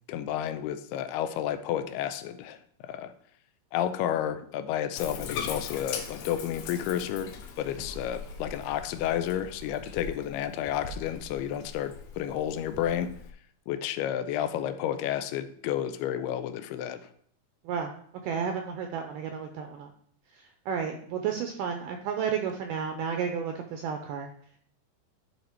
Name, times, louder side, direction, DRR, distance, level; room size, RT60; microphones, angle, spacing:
voice 1, 0.1-3.1 3.7-13.1 13.7-17.1, left 10 dB, 85° left, 11 dB, 2.6 m, -31 dB
Bathtub (filling or washing), 5.0-13.3, left 5 dB, 70° left, 2.3 m, -41 dB
voice 2, 18.2-19.9 20.3-24.3, right 7 dB, 80° right, 5 dB, 1.9 m, -32 dB
11.5 x 4.9 x 4.5 m, 0.62 s
omnidirectional pair, 4.6 m